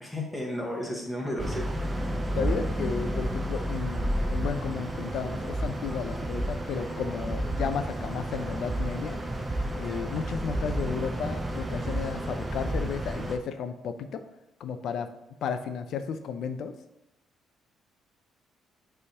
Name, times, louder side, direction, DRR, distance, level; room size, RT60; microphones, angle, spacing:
voice 1, 0.0-1.7, left 1 dB, 5° left, -2 dB, 1.3 m, -33 dB
sound 1, 1.4-13.4, right 1 dB, 15° right, 0.6 m, -31 dB
voice 2, 2.1-9.2 9.7-14.3 14.6-15.1 15.4-16.8, left 6 dB, 65° left, 9 dB, 0.5 m, -33 dB
9.6 x 3.4 x 2.9 m, 0.89 s
cardioid pair, 145°, 0 cm